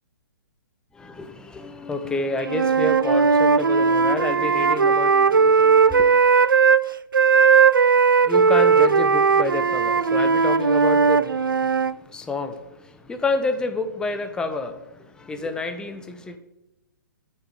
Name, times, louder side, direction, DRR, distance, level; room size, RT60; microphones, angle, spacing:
voice 1, 0.9-6.2 8.2-16.4, left 2 dB, 5° left, 7 dB, 0.7 m, -29 dB
Wind instrument woodwind instrument, 2.4-6.8 7.1-11.9, right 5 dB, 85° right, 0.4 m, -18 dB
8.7 x 6.9 x 4.9 m, 0.92 s
figure-of-eight pair, 125°, 11 cm